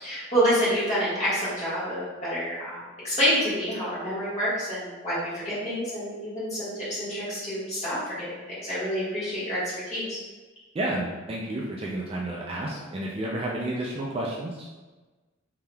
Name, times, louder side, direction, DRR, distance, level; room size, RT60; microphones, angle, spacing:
voice 1, 0.0-10.2, equal, 35° left, -10 dB, 1.4 m, -28 dB
voice 2, 10.7-14.7, right 1 dB, 30° right, -3 dB, 0.3 m, -31 dB
3.4 x 2.7 x 2.2 m, 1.2 s
head